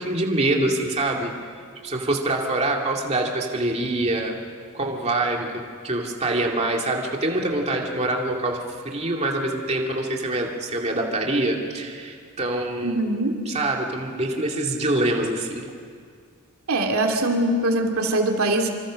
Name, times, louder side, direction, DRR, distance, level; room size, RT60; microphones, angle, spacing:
voice 1, 0.0-1.3 1.8-4.4 4.7-8.6 8.8-13.0 13.5-15.7, right 2 dB, 30° right, 0 dB, 2.5 m, -25 dB
voice 2, 12.8-13.4 16.7-18.7, right 1 dB, 75° right, 3 dB, 2.5 m, -22 dB
26.5 x 26.0 x 6.4 m, 2.1 s
head